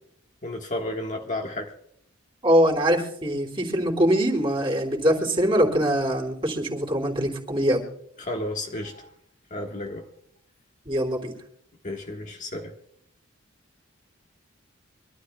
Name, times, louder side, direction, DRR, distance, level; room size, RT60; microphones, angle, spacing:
voice 1, 0.4-1.7 8.2-9.1 9.5-10.1 11.8-12.7, left 1 dB, 40° left, 1.4 m, -32 dB
voice 2, 2.4-7.8 10.8-11.3, equal, 25° right, 3.4 m, -23 dB
25.5 x 12.5 x 2.3 m
head